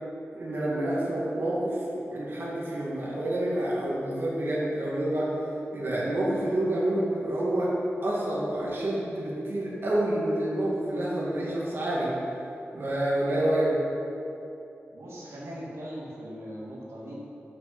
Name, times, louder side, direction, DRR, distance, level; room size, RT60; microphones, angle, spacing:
voice 1, 0.3-1.8 2.1-5.3 5.7-7.8 8.0-12.1 12.7-13.7, right 1 dB, 55° right, -6 dB, 2.2 m, -28 dB
voice 2, 14.9-17.1, equal, 85° right, -6 dB, 2.2 m, -40 dB
8.4 x 6.1 x 8.1 m, 2.8 s
wide cardioid pair, 125°, 5 cm